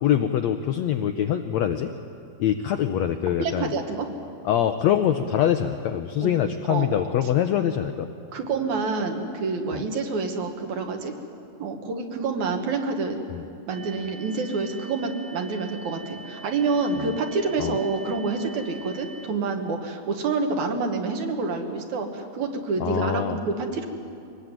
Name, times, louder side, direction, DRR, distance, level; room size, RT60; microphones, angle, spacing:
voice 1, 0.0-1.9 2.4-3.7 4.4-8.1 9.7-9.8 13.3-13.4 17.0-17.1 17.6-17.8 22.8-23.4, left 10 dB, 80° left, 7 dB, 1.6 m, -24 dB
voice 2, 3.4-4.1 6.2-6.3 6.7-7.0 8.3-11.1 11.6-13.2 13.7-23.9, right 4 dB, 65° right, 4 dB, 2.8 m, -27 dB
sound 1, 13.7-19.3, right 4 dB, 80° right, 3.2 m, -44 dB
24.0 x 19.0 x 9.1 m, 2.6 s
omnidirectional pair, 3.9 m